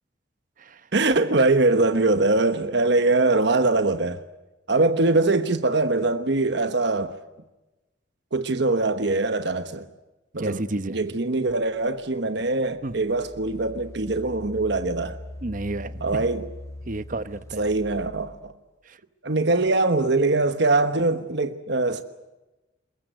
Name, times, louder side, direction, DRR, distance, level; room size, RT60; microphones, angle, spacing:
voice 1, 0.9-4.2 4.7-7.1 8.3-9.9 10.3-10.6 10.9-15.2 16.0-16.4 17.6-18.5 19.2-22.0, right 2 dB, 60° right, 1.2 m, -22 dB
voice 2, 10.4-11.0 12.8-12.9 15.4-16.3 16.9-17.7 18.8-19.0, right 2 dB, 40° right, 0.9 m, -31 dB
Engine, 12.6-18.5, left 1 dB, 15° left, 1.1 m, -41 dB
22.5 x 20.5 x 9.2 m
head